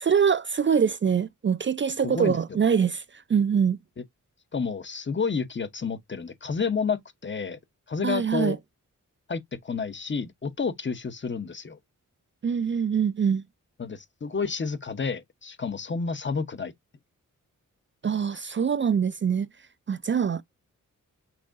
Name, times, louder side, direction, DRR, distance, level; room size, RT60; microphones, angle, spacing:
voice 1, 0.0-3.0 3.3-3.8 8.0-8.6 12.4-13.4 18.0-19.5 19.9-20.4, right 7 dB, 40° right, 0.4 m, -24 dB
voice 2, 2.0-2.4 4.5-7.6 7.9-8.6 9.3-11.8 13.8-16.7, left 5 dB, 35° left, 0.7 m, -30 dB
5.9 x 3.6 x 2.4 m
wide cardioid pair, 85°, 32 cm